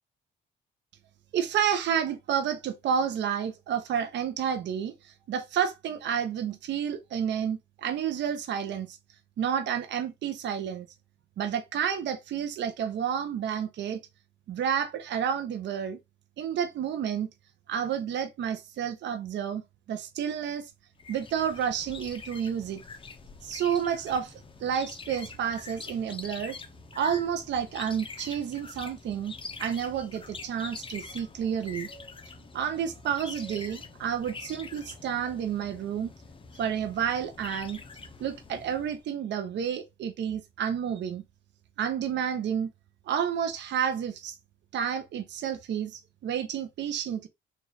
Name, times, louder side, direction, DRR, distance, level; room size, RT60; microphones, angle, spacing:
voice 1, 1.3-9.0 9.4-10.9 11.4-14.0 14.5-16.0 16.4-17.3 17.7-19.6 19.9-20.7 21.1-22.8 23.4-26.6 26.9-29.3 29.6-31.9 32.5-36.1 36.6-37.8 38.2-41.2 41.8-42.7 43.1-44.3 44.7-47.3, right 8 dB, 65° right, 0.6 m, -30 dB
sound 1, 21.0-39.0, left 4 dB, 25° left, 0.6 m, -45 dB
3.1 x 2.4 x 4.0 m
cardioid pair, 90°, 20 cm